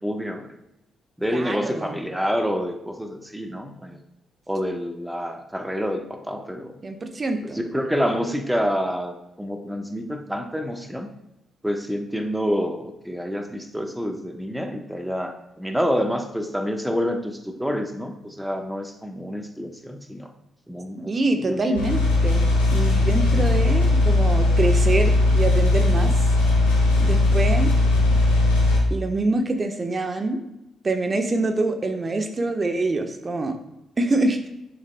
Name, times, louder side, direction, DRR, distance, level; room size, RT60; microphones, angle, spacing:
voice 1, 0.0-0.5 1.2-4.0 4.5-6.7 7.5-11.1 11.6-20.3 20.7-21.8, equal, 5° right, 5 dB, 1.1 m, -28 dB
voice 2, 1.3-2.0 6.8-7.6 21.1-26.3 27.0-27.7 28.9-30.4 30.8-33.6 34.0-34.5, right 2 dB, 35° right, 6 dB, 1.1 m, -25 dB
sound 1, 21.7-28.8, left 2 dB, 85° left, 1.7 m, -18 dB
11.0 x 6.7 x 2.3 m, 0.88 s
hypercardioid pair, 40°, 0 cm